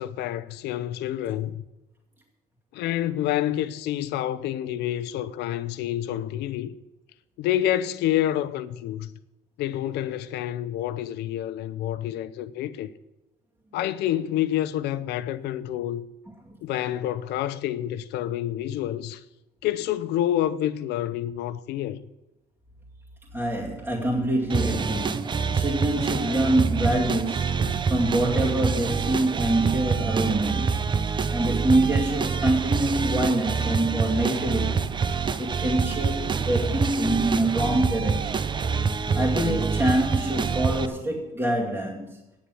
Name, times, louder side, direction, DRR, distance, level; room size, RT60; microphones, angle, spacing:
voice 1, 0.0-1.6 2.7-6.7 7.4-9.1 9.6-12.9 13.7-16.0 16.6-19.2 19.6-22.0, left 12 dB, 85° left, 0.7 m, -28 dB
voice 2, 23.3-30.8 31.1-34.8 35.1-38.5 38.9-42.2, right 1 dB, 10° right, 2.3 m, -25 dB
sound 1, 24.5-40.9, right 5 dB, 25° right, 0.6 m, -26 dB
9.3 x 7.1 x 9.0 m
cardioid pair, 110°, 17 cm